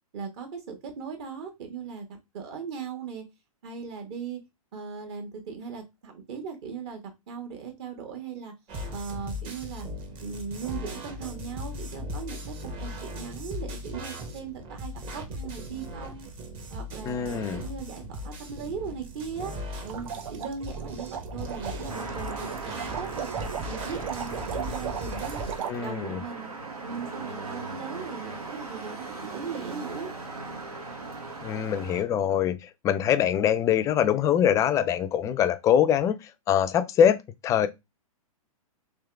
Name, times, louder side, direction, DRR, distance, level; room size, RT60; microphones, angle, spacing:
voice 1, 0.1-2.1 2.3-3.2 3.6-4.4 4.7-7.0 7.3-8.5 8.9-9.9 10.2-12.5 12.8-16.3 16.7-19.5 19.8-23.3 23.6-25.5 25.8-26.5 26.8-30.1, right 6 dB, 45° right, 1.4 m, -38 dB
sound 1, 8.7-25.6, equal, 30° right, 1.0 m, -38 dB
voice 2, 17.0-17.7 25.7-26.2 31.4-37.7, left 9 dB, 15° left, 0.3 m, -24 dB
sound 2, 19.9-25.7, right 8 dB, 65° right, 0.6 m, -37 dB
sound 3, 21.9-32.0, right 3 dB, 85° right, 1.3 m, -38 dB
3.5 x 3.1 x 3.4 m
hypercardioid pair, 115°, 19 cm